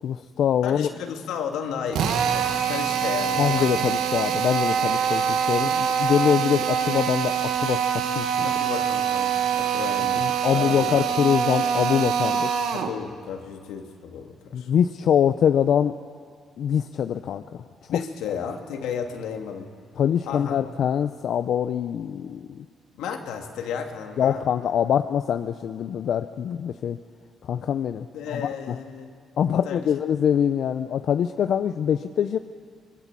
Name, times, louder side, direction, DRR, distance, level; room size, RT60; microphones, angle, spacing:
voice 1, 0.0-0.9 3.4-8.5 10.2-12.5 14.5-16.0 16.6-18.0 20.0-22.6 24.2-27.0 27.4-28.8 29.4-32.4, left 8 dB, 65° left, 9 dB, 0.7 m, -24 dB
voice 2, 0.6-3.9 4.6-4.7 8.4-10.2 10.5-11.0 12.7-14.7 17.9-19.7 20.2-20.6 23.0-24.4 28.1-29.1 29.6-29.9, left 7 dB, 90° left, 4 dB, 2.3 m, -33 dB
Drill, 1.9-13.0, right 7 dB, 85° right, 1.5 m, -24 dB
25.0 x 22.0 x 7.6 m, 2.1 s
cardioid pair, 90°, 0 cm